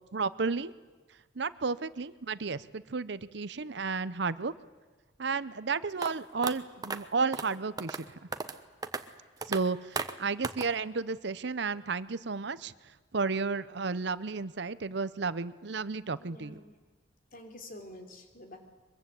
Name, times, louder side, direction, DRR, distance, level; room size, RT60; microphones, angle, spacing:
voice 1, 0.1-0.7 1.3-4.5 5.2-8.2 9.5-12.7 13.1-16.6, right 4 dB, 65° right, 16 dB, 0.8 m, -32 dB
sound 1, 6.0-6.1 6.4-6.5 6.8-7.0 7.3-7.5 7.8-8.0 8.3-8.6 8.8-9.0 9.4-9.6 10.0-10.1 10.4-10.7, right 4 dB, 20° right, 1.1 m, -34 dB
voice 2, 16.2-16.8 17.3-18.6, left 1 dB, 50° left, 5 dB, 3.6 m, -48 dB
23.5 x 22.5 x 8.4 m, 1.3 s
head